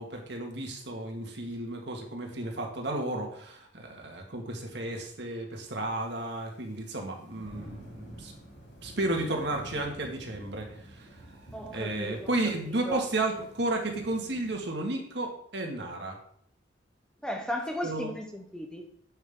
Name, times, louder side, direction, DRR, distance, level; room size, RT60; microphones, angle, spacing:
voice 1, 0.0-8.3 8.8-11.4 11.7-16.2 17.8-18.1, right 2 dB, 60° right, 1 dB, 2.1 m, -33 dB
sound 1, 5.5-14.6, right 1 dB, 60° left, 4.1 m, -49 dB
voice 2, 11.5-12.3 12.6-13.0 17.2-18.9, equal, 5° left, 2 dB, 0.9 m, -35 dB
11.0 x 8.0 x 3.8 m, 0.65 s
head